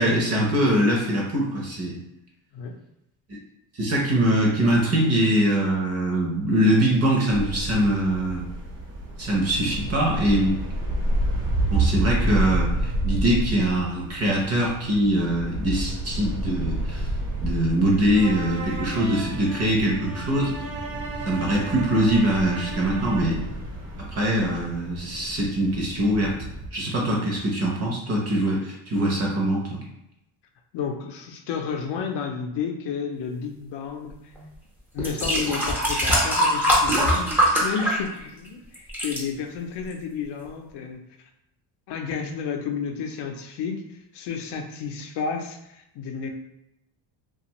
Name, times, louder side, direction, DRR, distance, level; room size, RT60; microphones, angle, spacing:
voice 1, 0.0-2.0 3.3-3.4 3.7-8.4 9.2-10.6 11.7-17.1 17.4-20.5 21.2-23.4 24.2-26.4 26.7-29.8, right 1 dB, 35° right, -2 dB, 0.7 m, -23 dB
sound 1, 7.3-26.7, right 1 dB, 60° right, 1.1 m, -30 dB
sound 2, 18.1-23.5, right 3 dB, 90° right, 0.6 m, -36 dB
voice 2, 30.7-34.2 34.9-41.0 41.9-43.8 44.1-46.3, left 6 dB, 60° left, 4 dB, 0.6 m, -31 dB
sound 3, 34.4-34.5 35.0-38.5 38.7-39.2 39.9-40.0, equal, 5° right, 0.5 m, -22 dB
2.5 x 2.4 x 2.9 m, 0.85 s
cardioid pair, 130°, 46 cm